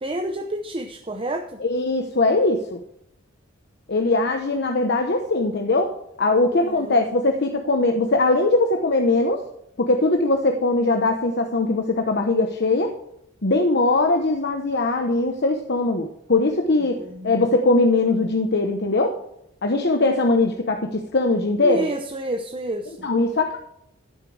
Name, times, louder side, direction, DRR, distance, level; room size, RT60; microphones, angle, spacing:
voice 1, 0.0-1.6 6.5-7.0 16.8-17.6 21.6-23.1, right 1 dB, 25° right, 5 dB, 0.7 m, -30 dB
voice 2, 1.6-2.8 3.9-5.9 6.2-9.4 9.8-12.9 13.4-17.0 17.2-19.2 19.6-21.9 23.0-23.6, left 2 dB, 55° left, 4 dB, 1.0 m, -21 dB
11.5 x 9.9 x 3.3 m, 0.77 s
head